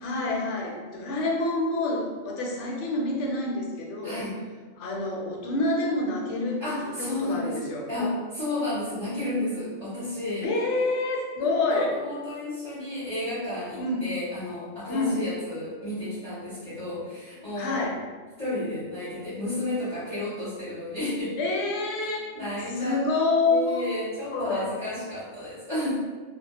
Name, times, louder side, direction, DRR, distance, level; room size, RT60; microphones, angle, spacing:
voice 1, 0.0-4.2 4.8-7.9 10.4-11.9 13.8-14.0 14.9-15.2 17.6-18.0 21.4-22.3 22.8-23.8 24.3-24.6, left 2 dB, 65° left, -1 dB, 0.8 m, -27 dB
voice 2, 4.0-4.3 6.6-10.5 11.7-17.9 18.4-21.4 22.3-23.0 23.4-26.0, left 1 dB, 30° left, -12 dB, 0.7 m, -32 dB
2.1 x 2.0 x 2.9 m, 1.4 s
omnidirectional pair, 1.4 m